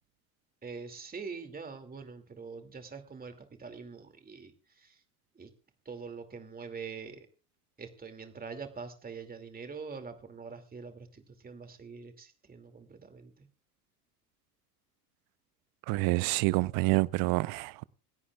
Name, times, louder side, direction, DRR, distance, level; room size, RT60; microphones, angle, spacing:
voice 1, 0.6-4.5 4.8-4.9 5.4-5.5 5.9-7.3 7.8-13.5, right 5 dB, 20° right, 2.5 m, -44 dB
voice 2, 15.9-17.8, right 23 dB, 50° right, 0.7 m, -27 dB
26.5 x 17.0 x 2.4 m
figure-of-eight pair, 70°, 45 cm